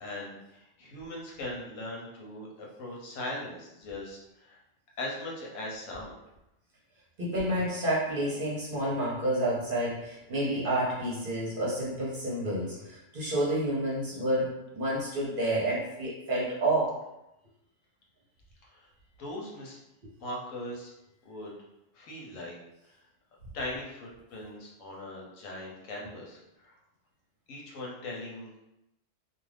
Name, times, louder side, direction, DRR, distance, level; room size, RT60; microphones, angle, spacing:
voice 1, 0.0-4.6 5.0-6.1 18.6-18.9 19.2-19.8 20.2-20.9 21.2-21.5 21.9-22.6 22.9-23.0 23.5-26.7 27.5-28.5, left 1 dB, 85° left, -3 dB, 1.1 m, -40 dB
voice 2, 7.2-17.0, right 1 dB, 50° right, -5 dB, 0.8 m, -29 dB
2.4 x 2.4 x 3.2 m, 0.90 s
omnidirectional pair, 1.3 m